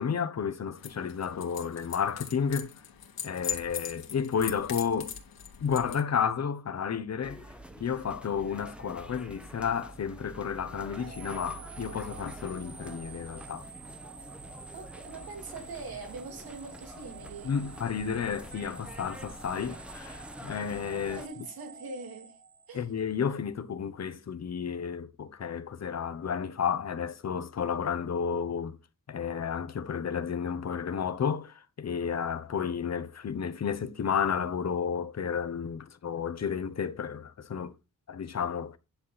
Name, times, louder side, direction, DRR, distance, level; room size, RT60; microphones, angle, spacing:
voice 1, 0.0-2.7 3.2-5.1 5.6-7.4 7.8-13.7 17.4-21.2 22.7-28.8 29.1-37.7 38.1-38.8, left 7 dB, 50° left, 1.1 m, -32 dB
sound 1, 0.8-6.0, left 7 dB, 85° left, 2.2 m, -40 dB
sound 2, 7.2-21.3, right 1 dB, 5° right, 1.0 m, -47 dB
sound 3, 10.9-23.1, right 5 dB, 35° right, 1.2 m, -49 dB
voice 2, 14.7-17.5 21.1-22.4 22.7-22.9, right 4 dB, 85° right, 3.0 m, -43 dB
10.5 x 7.5 x 4.2 m
wide cardioid pair, 155°, 35 cm